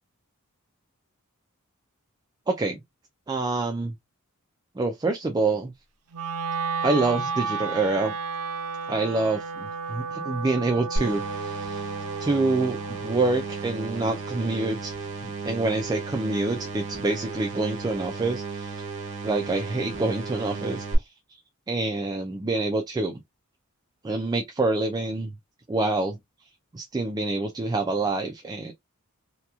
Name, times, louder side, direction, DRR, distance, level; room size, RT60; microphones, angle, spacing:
voice 1, 2.5-2.8 3.3-3.9 4.8-5.7 6.8-8.1 8.9-11.9 12.2-18.8 19.2-21.4 21.7-23.2 24.0-25.3 25.7-26.2 26.7-28.7, right 3 dB, 20° right, 0.3 m, -27 dB
Wind instrument woodwind instrument, 6.1-16.3, right 4 dB, 85° right, 0.5 m, -34 dB
sound 1, 11.0-21.0, right 3 dB, 60° right, 0.8 m, -34 dB
2.9 x 2.3 x 2.3 m
head